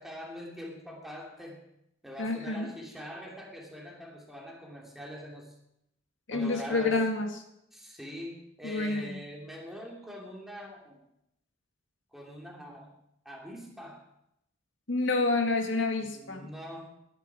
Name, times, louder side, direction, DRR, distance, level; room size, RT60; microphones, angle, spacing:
voice 1, 0.0-1.7 2.0-5.5 6.3-7.0 7.7-11.0 12.1-13.0 13.2-14.0 16.0-16.9, equal, ahead, -1 dB, 2.9 m, -43 dB
voice 2, 2.2-2.7 6.3-7.3 8.6-9.2 14.9-16.5, left 3 dB, 80° left, 4 dB, 2.1 m, -28 dB
18.0 x 10.0 x 4.9 m, 0.80 s
head